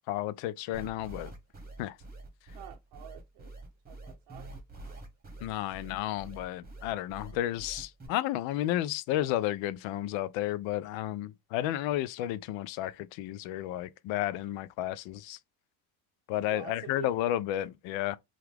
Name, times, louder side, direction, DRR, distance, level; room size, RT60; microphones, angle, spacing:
voice 1, 0.1-1.3 1.8-2.0 5.4-15.4 16.3-18.2, left 13 dB, 65° left, 0.5 m, -32 dB
sound 1, 0.7-8.1, right 2 dB, 20° right, 1.1 m, -46 dB
voice 2, 2.5-3.5 3.9-4.5 6.1-6.3 16.5-17.1, right 10 dB, 65° right, 0.7 m, -47 dB
2.8 x 2.4 x 3.3 m
supercardioid pair, 75°, 49 cm